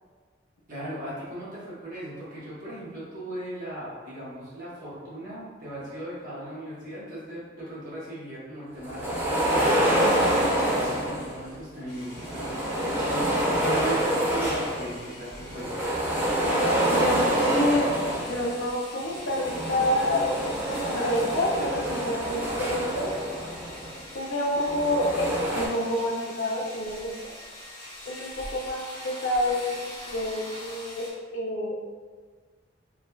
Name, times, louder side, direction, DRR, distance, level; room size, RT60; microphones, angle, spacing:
voice 1, 0.7-9.8 10.3-12.5 13.1-15.7, right 1 dB, 45° right, -9 dB, 1.3 m, -37 dB
sound 1, 8.8-11.5 12.1-15.0 15.3-18.6 19.2-24.0 24.6-25.7, right 1 dB, 10° right, 0.6 m, -26 dB
sound 2, 11.9-31.1, left 1 dB, 30° left, 1.3 m, -44 dB
voice 2, 16.8-23.1 24.1-27.3 28.1-31.8, left 1 dB, 85° left, -1 dB, 0.6 m, -28 dB
3.6 x 3.1 x 2.2 m, 1.5 s
head